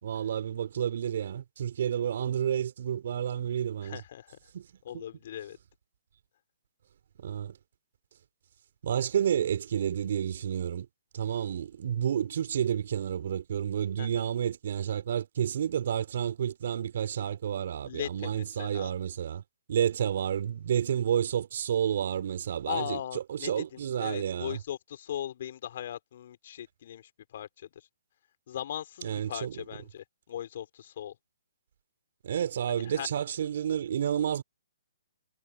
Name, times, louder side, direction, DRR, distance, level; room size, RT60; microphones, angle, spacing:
voice 1, 0.0-4.0 4.5-4.7 4.9-5.0 7.2-7.6 8.8-10.9 11.1-19.4 19.7-24.6 29.0-29.5 32.2-34.4, right 9 dB, 55° right, 4.4 m, -30 dB
voice 2, 3.8-4.4 4.8-5.6 14.0-14.3 17.8-18.9 22.6-27.9 28.5-31.1 32.7-33.1, left 10 dB, 50° left, 4.7 m, -39 dB
figure-of-eight pair, 135°, 0 cm